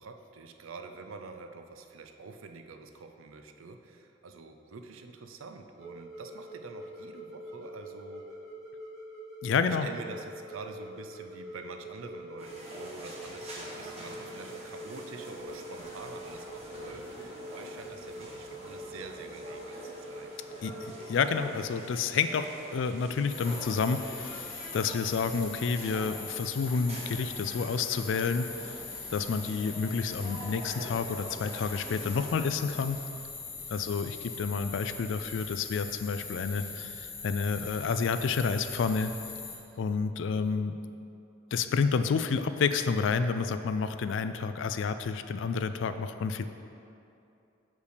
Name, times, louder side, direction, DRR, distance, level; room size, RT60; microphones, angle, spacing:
voice 1, 0.0-8.3 9.6-20.6 33.5-33.9, right 4 dB, 85° right, 6 dB, 0.5 m, -47 dB
sound 1, 5.8-21.4, equal, ahead, 1.6 m, -45 dB
voice 2, 9.4-9.9 20.6-28.8 29.1-33.0 33.7-39.1 39.8-40.7 41.5-46.4, left 5 dB, 65° left, 10 dB, 0.3 m, -30 dB
sound 2, 12.4-32.3, right 1 dB, 30° right, 1.2 m, -45 dB
sound 3, 23.3-39.6, left 4 dB, 45° left, 1.3 m, -42 dB
6.5 x 5.3 x 5.0 m, 2.7 s
head